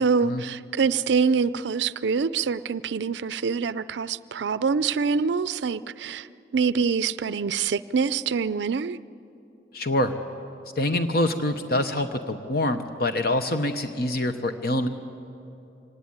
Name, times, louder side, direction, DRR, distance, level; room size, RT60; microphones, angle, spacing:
voice 1, 0.0-6.3 6.5-9.0, right 5 dB, 75° right, 16 dB, 0.4 m, -25 dB
voice 2, 9.7-10.1 10.8-14.9, left 1 dB, 55° left, 7 dB, 0.9 m, -25 dB
25.0 x 17.5 x 9.5 m, 2.8 s
head